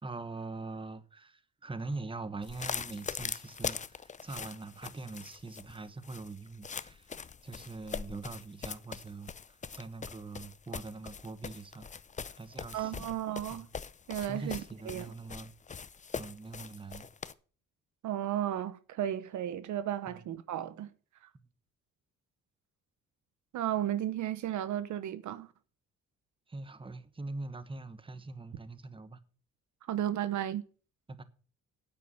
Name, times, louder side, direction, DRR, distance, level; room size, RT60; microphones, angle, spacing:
voice 1, 0.0-7.2 7.4-11.9 12.4-13.2 13.5-13.7 14.3-15.5 16.2-17.1 20.1-20.2 26.5-29.2 31.1-31.2, right 3 dB, 15° right, 1.2 m, -43 dB
sound 1, 2.4-17.3, left 6 dB, 25° left, 0.6 m, -41 dB
voice 2, 12.7-13.7 14.1-15.1 18.0-20.9 23.5-25.5 29.9-30.6, right 11 dB, 70° right, 0.9 m, -34 dB
9.0 x 8.6 x 6.5 m
cardioid pair, 90°, 30 cm